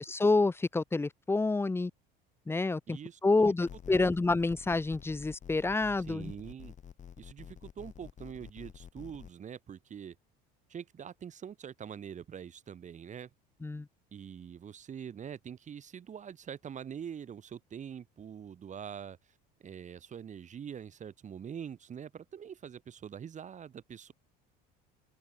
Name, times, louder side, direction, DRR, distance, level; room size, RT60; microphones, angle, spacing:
voice 1, 0.0-1.9 2.5-3.0 3.2-6.3 13.6-13.9, left 3 dB, 10° left, 1.1 m, -28 dB
voice 2, 2.9-3.5 3.9-4.1 6.1-6.7 7.2-10.2 10.7-13.3 14.1-19.2 19.6-24.1, right 8 dB, 35° right, 5.2 m, -44 dB
sound 1, 3.7-9.3, left 8 dB, 35° left, 3.4 m, -49 dB
supercardioid pair, 110°, 20 cm